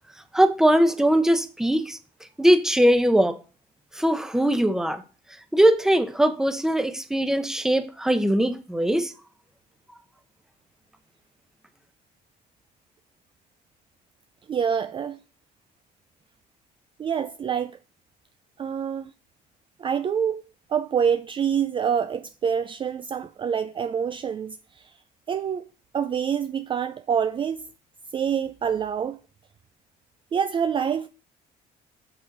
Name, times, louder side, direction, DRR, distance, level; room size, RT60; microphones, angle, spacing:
voice 1, 0.3-2.0 2.4-3.4 3.9-5.0 5.5-9.1, right 1 dB, 5° right, 0.8 m, -21 dB
voice 2, 14.5-15.2 17.0-17.8 18.6-19.1 19.8-20.4 20.7-24.9 25.3-25.7 25.9-27.7 28.1-29.2 30.3-31.1, right 7 dB, 30° right, 0.4 m, -26 dB
6.7 x 6.1 x 3.9 m
cardioid pair, 110°, 17 cm